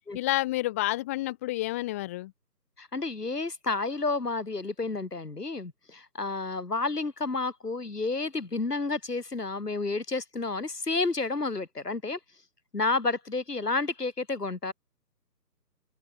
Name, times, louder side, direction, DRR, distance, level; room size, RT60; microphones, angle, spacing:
voice 1, 0.1-2.3, left 17 dB, 10° left, 1.7 m, -29 dB
voice 2, 2.8-12.2 12.7-14.7, left 3 dB, 70° left, 6.2 m, -30 dB
figure-of-eight pair, 160°, 50 cm